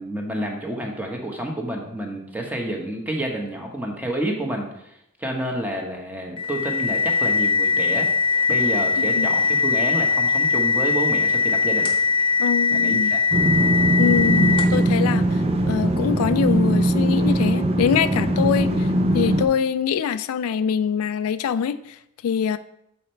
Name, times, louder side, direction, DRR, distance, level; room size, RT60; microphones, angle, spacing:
voice 1, 0.0-8.1 8.5-11.9 12.7-13.2, right 1 dB, 10° right, 1 dB, 1.0 m, -29 dB
sound 1, 6.4-14.9, left 5 dB, 25° left, 0.9 m, -21 dB
voice 2, 9.0-9.3 12.4-13.1 14.0-18.9 19.1-22.0 22.2-22.6, left 7 dB, 80° left, 12 dB, 0.3 m, -24 dB
sound 2, 13.3-19.5, right 1 dB, 30° right, 0.6 m, -20 dB
7.1 x 4.3 x 4.5 m, 0.80 s
head